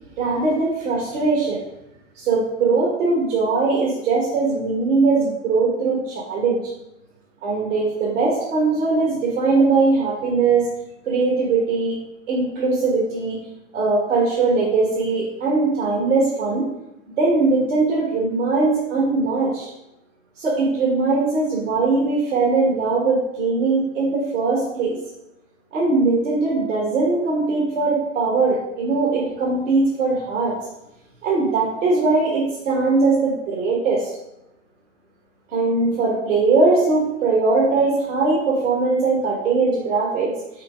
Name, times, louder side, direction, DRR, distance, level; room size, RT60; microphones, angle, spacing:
voice 1, 0.2-1.6 2.1-6.6 7.4-10.6 11.0-11.9 12.3-13.4 13.7-16.6 17.1-19.7 20.3-24.9 25.7-30.6 31.2-34.1 35.5-40.6, right 3 dB, 80° right, -4 dB, 1.5 m, -20 dB
5.7 x 3.5 x 5.0 m, 0.92 s
hypercardioid pair, 90°, 36 cm